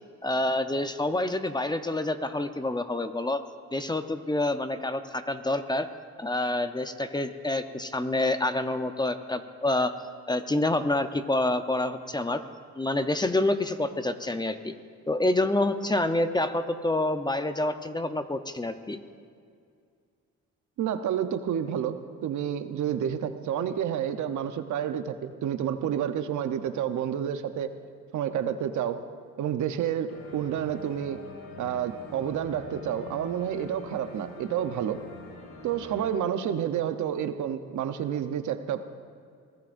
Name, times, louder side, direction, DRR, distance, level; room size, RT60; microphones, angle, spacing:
voice 1, 0.2-3.4 3.7-5.9 6.2-9.9 10.3-12.4 12.7-14.7 15.1-19.0, left 2 dB, 15° left, 9 dB, 0.8 m, -27 dB
voice 2, 20.8-27.7 28.1-29.0 29.4-31.2 31.6-35.0 35.6-38.9, right 9 dB, 75° right, 9 dB, 0.9 m, -29 dB
sound 1, 30.1-36.1, left 3 dB, 60° left, 2.7 m, -45 dB
23.5 x 16.5 x 2.6 m, 2.3 s
cardioid pair, 90°, 30 cm